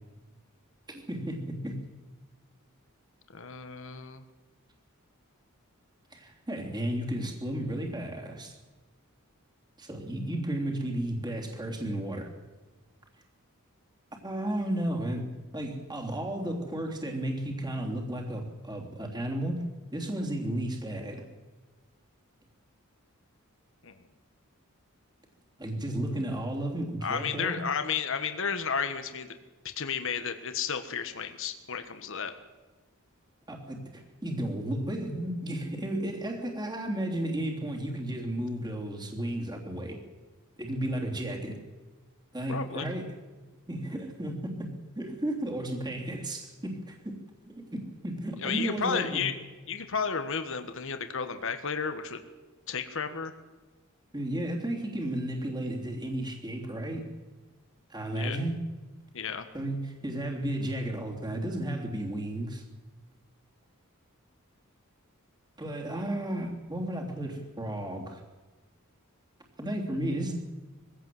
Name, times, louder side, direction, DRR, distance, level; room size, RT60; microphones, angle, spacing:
voice 1, 0.9-1.8 6.1-8.5 9.8-12.3 14.2-15.3 15.5-19.6 19.9-21.2 25.6-27.6 33.5-40.0 40.6-41.6 42.3-43.1 43.7-44.7 45.0-49.2 54.1-57.1 57.9-58.5 59.5-62.6 65.6-68.2 69.6-70.4, right 1 dB, 20° right, 1 dB, 3.2 m, -33 dB
voice 2, 3.3-4.2 23.8-23.9 27.0-29.3 29.8-32.3 42.5-42.9 48.4-49.3 49.7-52.2 52.7-53.3 58.1-58.4 59.1-59.5, left 6 dB, 60° left, 8 dB, 1.5 m, -32 dB
22.5 x 16.5 x 7.8 m, 1.3 s
head